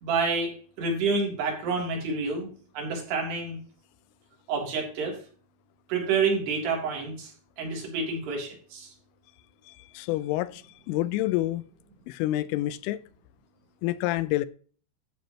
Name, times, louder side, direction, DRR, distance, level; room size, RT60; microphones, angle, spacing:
voice 1, 0.0-2.5 2.7-3.6 4.5-5.2 5.9-7.3 7.6-8.9, right 4 dB, 60° right, 5.1 m, -28 dB
voice 2, 9.7-10.6 10.9-11.6 12.1-13.0 13.8-14.5, left 16 dB, 90° left, 3.2 m, -28 dB
13.5 x 8.1 x 3.0 m
omnidirectional pair, 5.7 m